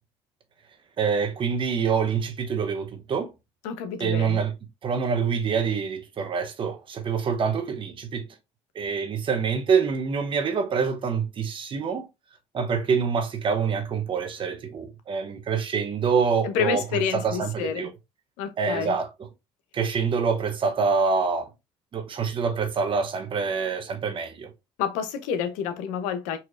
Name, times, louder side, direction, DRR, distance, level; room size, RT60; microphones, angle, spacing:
voice 1, 1.0-3.3 4.0-4.5 4.8-8.2 8.7-12.1 12.5-17.9 18.6-19.3 19.7-21.5 21.9-24.5, right 6 dB, 45° right, 0.8 m, -26 dB
voice 2, 3.6-4.4 16.4-17.9 18.4-18.9 24.8-26.4, left 7 dB, 85° left, 0.7 m, -29 dB
4.1 x 2.9 x 2.5 m
supercardioid pair, 85°, 12 cm